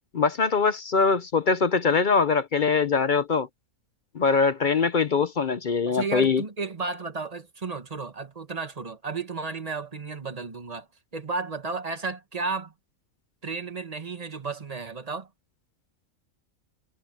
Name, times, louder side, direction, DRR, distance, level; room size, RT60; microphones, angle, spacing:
voice 1, 0.1-3.5 4.1-6.4, left 5 dB, 50° left, 0.7 m, -22 dB
voice 2, 5.9-10.9 11.1-12.7 13.4-15.3, right 4 dB, 30° right, 1.3 m, -33 dB
omnidirectional pair, 1.4 m